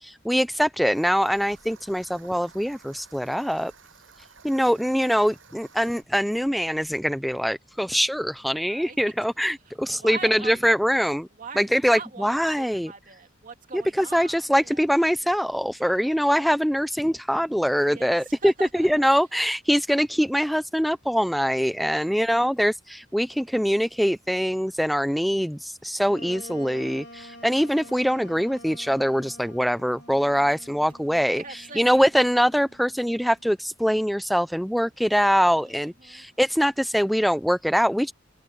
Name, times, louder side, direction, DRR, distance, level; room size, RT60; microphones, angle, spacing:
voice 1, 0.0-3.7 4.4-11.3 11.6-12.9 13.7-31.4 31.8-38.1, equal, ahead, 0.4 m, -23 dB
sound 1, 0.9-6.0, right 6 dB, 80° right, 7.7 m, -53 dB
voice 2, 8.4-9.0 9.4-14.9 15.7-16.0 17.8-19.1 21.7-22.2 31.3-32.1 35.5-36.3, right 5 dB, 45° right, 3.0 m, -43 dB
Wind instrument woodwind instrument, 26.1-33.5, left 1 dB, 60° left, 2.1 m, -47 dB
head